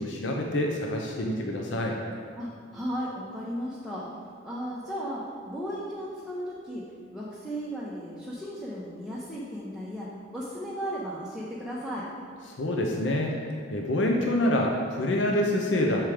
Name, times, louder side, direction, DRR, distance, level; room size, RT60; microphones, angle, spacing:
voice 1, 0.0-2.0 12.5-13.4 13.7-16.1, left 1 dB, 70° left, 0 dB, 0.7 m, -26 dB
voice 2, 2.4-4.1 4.4-6.9 7.1-12.1, equal, ahead, -8 dB, 0.8 m, -35 dB
7.4 x 4.7 x 4.9 m, 2.2 s
head